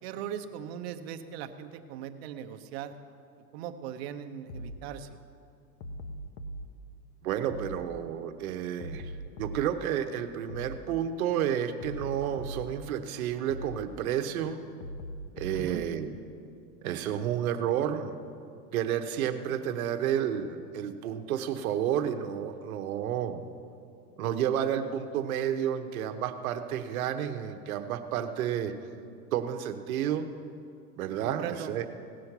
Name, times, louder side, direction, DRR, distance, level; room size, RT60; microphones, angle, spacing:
voice 1, 0.0-2.9 3.5-5.1 15.5-15.9 31.2-31.7, right 9 dB, 40° right, 7 dB, 0.7 m, -39 dB
sound 1, 4.5-4.8 5.8-6.7 7.5-7.8 8.8-9.7 10.5-10.8 11.8-12.7 13.5-13.8 14.8-15.7, equal, 40° left, 0.8 m, -40 dB
voice 2, 7.2-9.1 9.4-14.6 15.3-16.1 16.8-18.1 18.7-23.4 24.2-28.7 29.3-30.3 31.0-31.9, right 9 dB, 60° right, 8 dB, 1.0 m, -31 dB
17.5 x 6.3 x 5.9 m, 2.4 s
supercardioid pair, 150°, 48 cm